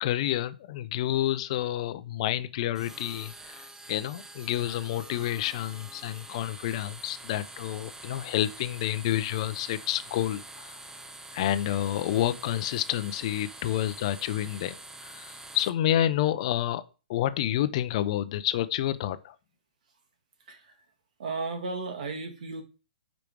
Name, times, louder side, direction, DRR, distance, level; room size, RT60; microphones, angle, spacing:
voice 1, 0.0-10.8 11.3-14.7 15.0-16.8 17.1-19.3, left 12 dB, 45° left, 0.6 m, -29 dB
sound 1, 2.7-15.7, right 2 dB, 10° right, 0.6 m, -46 dB
voice 2, 21.2-22.6, right 3 dB, 60° right, 1.7 m, -34 dB
5.1 x 5.0 x 4.6 m
hypercardioid pair, 135°, 5 cm